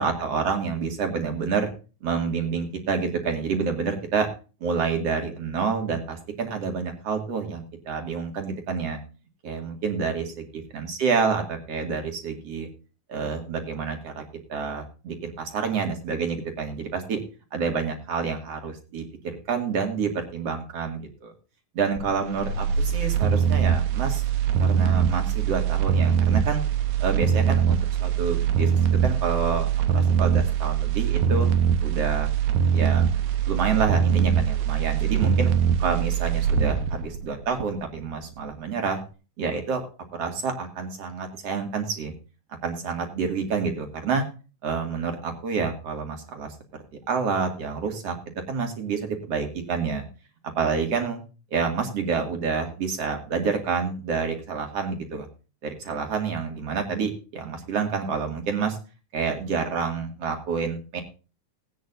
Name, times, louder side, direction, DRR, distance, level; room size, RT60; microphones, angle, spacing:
voice 1, 0.0-1.7 2.0-4.3 4.6-9.0 9.4-12.7 13.1-14.2 14.5-17.2 17.5-19.1 19.5-21.3 21.7-24.2 24.6-26.6 27.0-28.7 29.0-29.7 29.9-31.5 31.8-32.3 32.7-33.1 33.5-35.5 35.8-39.0 39.4-39.8 40.2-42.1 42.6-44.2 44.6-50.0 50.6-51.2 51.5-55.3 55.8-58.8 59.1-61.0, right 5 dB, 45° right, 4 dB, 3.1 m, -28 dB
sound 1, 22.0-38.0 38.4-38.5, right 8 dB, 70° right, 2.1 m, -23 dB
19.0 x 9.3 x 2.7 m, 0.34 s
omnidirectional pair, 4.0 m